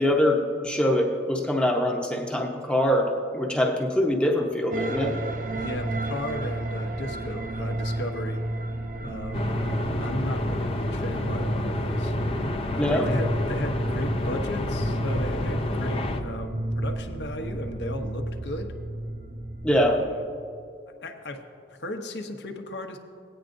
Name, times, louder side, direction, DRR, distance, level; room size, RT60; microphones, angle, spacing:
voice 1, 0.0-5.2 12.8-13.1 19.6-20.0, left 1 dB, 5° left, 0 dB, 0.8 m, -23 dB
sound 1, 4.7-20.0, right 1 dB, 45° right, 0.6 m, -31 dB
voice 2, 5.6-8.4 9.0-9.6 10.0-12.2 12.7-18.7 19.7-20.2 21.0-21.4 21.7-23.0, left 1 dB, 70° left, 4 dB, 0.9 m, -35 dB
sound 2, 9.3-16.2, left 2 dB, 30° left, 0.5 m, -30 dB
17.5 x 9.6 x 2.6 m, 2.3 s
head